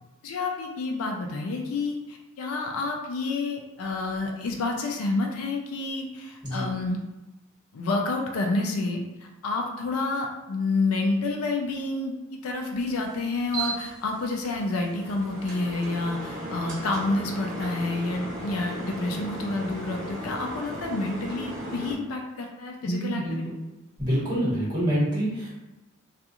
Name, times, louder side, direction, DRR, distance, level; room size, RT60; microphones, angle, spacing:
voice 1, 0.2-7.0 7.7-23.4, left 3 dB, 80° left, 1 dB, 0.4 m, -29 dB
sound 1, 12.9-21.9, right 2 dB, 40° right, 0.8 m, -36 dB
voice 2, 22.8-23.5 24.0-25.5, equal, 20° right, -10 dB, 1.3 m, -26 dB
2.4 x 2.3 x 2.8 m, 1.0 s
head